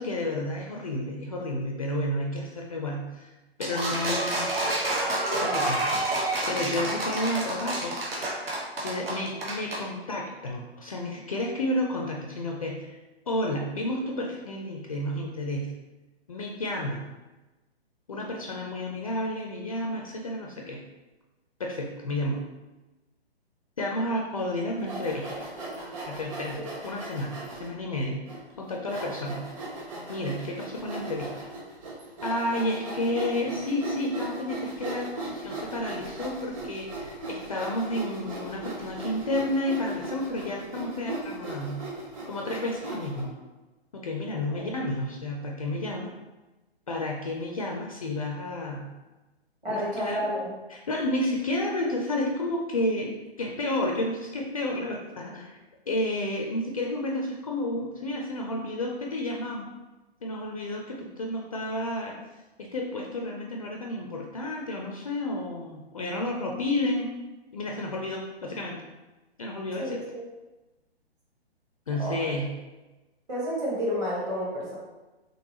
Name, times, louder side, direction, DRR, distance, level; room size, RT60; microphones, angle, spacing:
voice 1, 0.0-3.3 3.6-4.5 5.4-8.1 8.8-13.0 13.3-15.7 16.3-17.1 18.1-20.8 21.6-22.4 23.8-25.5 26.1-28.3 28.6-29.5 30.1-31.5 32.2-41.8 42.2-43.3 43.9-46.1 46.9-48.9 49.7-50.3 50.7-53.1 53.4-55.6 55.9-59.6 60.2-62.1 62.6-67.1 67.5-68.8 69.4-70.0 71.9-72.5, left 1 dB, 35° left, -1 dB, 0.4 m, -31 dB
sound 1, 3.6-9.8, right 1 dB, 60° right, 1.2 m, -28 dB
Sawing, 24.8-27.7 28.3-28.4 28.9-43.2, right 2 dB, 30° right, 1.3 m, -38 dB
voice 2, 49.6-50.5 69.8-70.0 72.0-72.3 73.3-74.8, equal, 10° right, -6 dB, 0.7 m, -30 dB
3.9 x 3.3 x 2.8 m, 1.1 s
figure-of-eight pair, 125°, 32 cm